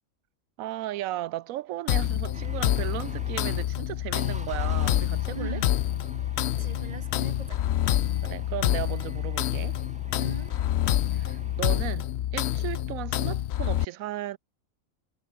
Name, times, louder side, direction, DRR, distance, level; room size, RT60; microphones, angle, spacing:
voice 1, 0.6-5.6 8.2-9.8 11.1-14.4, right 14 dB, 85° right, 1.0 m, -35 dB
sound 1, 1.9-13.8, left 12 dB, 65° left, 0.8 m, -27 dB
sound 2, 2.3-3.6 4.1-11.8, right 1 dB, 5° right, 1.6 m, -47 dB
voice 2, 5.3-5.7 6.3-7.6 10.2-10.5, right 5 dB, 35° right, 0.9 m, -41 dB
omnidirectional pair, 1.4 m